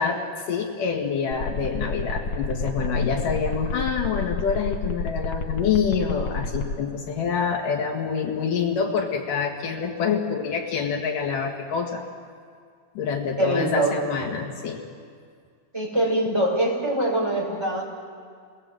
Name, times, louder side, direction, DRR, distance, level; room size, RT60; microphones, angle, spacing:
voice 1, 0.0-12.0 12.9-14.8, left 6 dB, 70° left, 1 dB, 3.3 m, -26 dB
sound 1, 1.3-6.7, left 3 dB, 85° left, 1.1 m, -29 dB
voice 2, 13.4-14.0 15.7-17.8, right 1 dB, 5° right, -2 dB, 5.1 m, -23 dB
28.5 x 21.0 x 7.8 m, 2.1 s
omnidirectional pair, 4.0 m